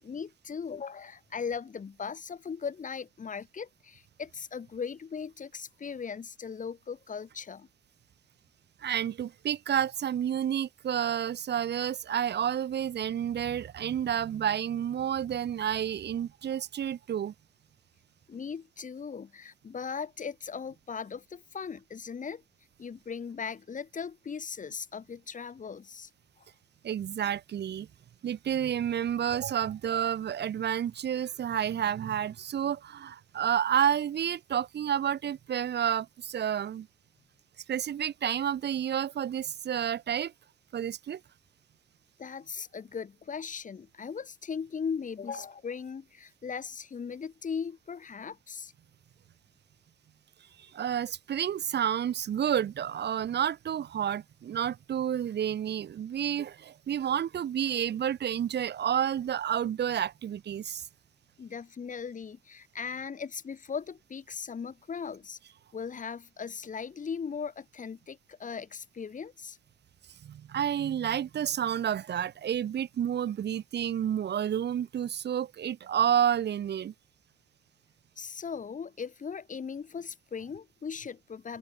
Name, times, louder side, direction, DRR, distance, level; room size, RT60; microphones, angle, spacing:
voice 1, 0.0-7.7 18.3-22.4 22.8-26.1 26.4-26.5 42.2-48.7 61.4-65.4 65.7-69.6 78.2-81.6, left 6 dB, 40° left, 2.6 m, -38 dB
voice 2, 8.8-17.3 26.8-27.9 28.2-36.9 37.7-40.3 40.7-41.2 50.6-60.9 70.2-76.9, right 9 dB, 60° right, 1.6 m, -30 dB
open air
cardioid pair, 90°, 20 cm